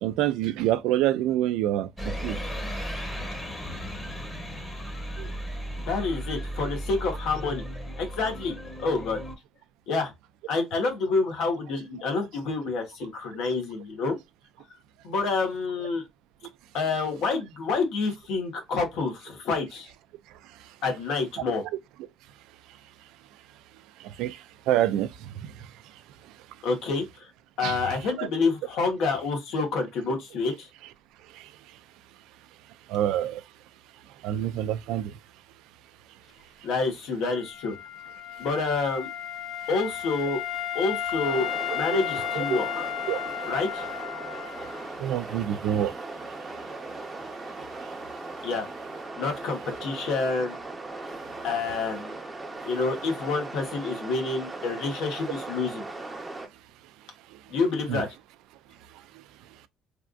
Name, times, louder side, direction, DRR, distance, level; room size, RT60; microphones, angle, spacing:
voice 1, 0.0-2.4 5.2-5.3 20.4-20.8 24.0-26.3 27.6-28.3 31.3-31.8 32.9-33.4 34.2-35.2 42.3-42.4 43.1-43.5 44.3-44.6 45.0-46.0 46.4-46.5 47.5-48.2 51.3-51.4 57.3-57.4 57.9-58.0 58.9-59.2, right 12 dB, 85° right, 0.3 m, -29 dB
sound 1, 2.0-9.3, equal, 15° left, 1.0 m, -35 dB
voice 2, 5.9-7.6 8.0-9.2 9.9-10.1 10.5-14.2 15.0-16.0 16.7-19.9 20.8-21.6 26.6-27.3 27.6-30.7 36.6-37.8 38.4-39.1 39.7-40.4 40.7-41.5 41.7-42.9 43.5-43.9 48.4-48.7 49.2-50.6 51.4-52.1 52.7-55.8 57.5-58.1, left 4 dB, 75° left, 1.3 m, -28 dB
Wind instrument woodwind instrument, 37.2-45.0, left 9 dB, 45° left, 0.5 m, -34 dB
sound 2, 41.2-56.5, right 2 dB, 15° right, 0.7 m, -38 dB
3.4 x 2.5 x 2.2 m
cardioid pair, 120°, 0 cm